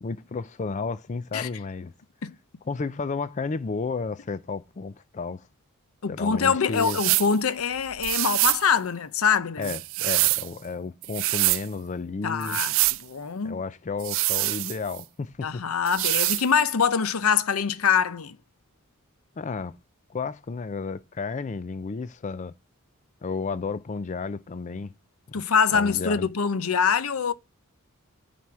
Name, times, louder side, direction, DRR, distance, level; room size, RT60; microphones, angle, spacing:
voice 1, 0.0-1.9 2.7-5.5 6.1-7.0 9.6-12.6 13.4-15.6 19.4-19.8 20.1-22.5 23.2-24.9 25.3-25.4 25.7-26.3, left 4 dB, 35° left, 0.4 m, -32 dB
voice 2, 6.0-9.7 12.2-12.7 13.0-13.6 15.4-18.4 25.3-27.3, left 6 dB, 75° left, 0.7 m, -24 dB
sound 1, 6.8-7.3 8.0-8.6 9.6-10.5 11.0-11.6 12.4-13.0 14.0-15.0 15.9-16.5, right 20 dB, 65° right, 0.4 m, -25 dB
9.5 x 4.2 x 4.6 m
head